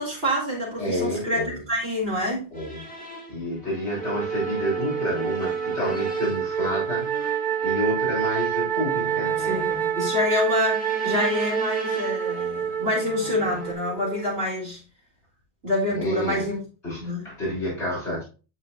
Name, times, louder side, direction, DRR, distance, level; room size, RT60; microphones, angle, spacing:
voice 1, 0.0-2.5 9.4-14.8 15.6-16.6 17.0-17.3, left 1 dB, 60° right, 3.9 m, -27 dB
voice 2, 0.8-1.6 2.5-2.8 3.3-9.4 15.9-16.5 16.8-18.2, equal, 75° left, 4.6 m, -29 dB
sound 1, 2.5-13.7, left 1 dB, 5° left, 2.1 m, -40 dB
Wind instrument woodwind instrument, 4.0-14.4, right 8 dB, 45° right, 1.1 m, -27 dB
12.0 x 4.5 x 2.5 m
omnidirectional pair, 1.1 m